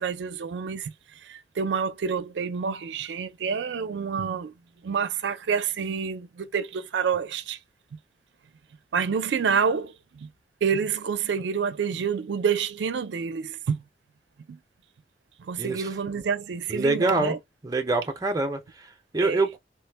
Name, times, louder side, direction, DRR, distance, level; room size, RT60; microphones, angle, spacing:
voice 1, 0.0-4.5 4.8-7.6 8.9-10.3 10.6-13.8 14.5-14.6 15.4-17.4 19.2-19.4, right 6 dB, 80° right, 0.4 m, -28 dB
voice 2, 15.6-15.9 16.7-17.4 17.6-19.6, right 2 dB, 20° right, 0.5 m, -25 dB
3.2 x 2.1 x 3.2 m
head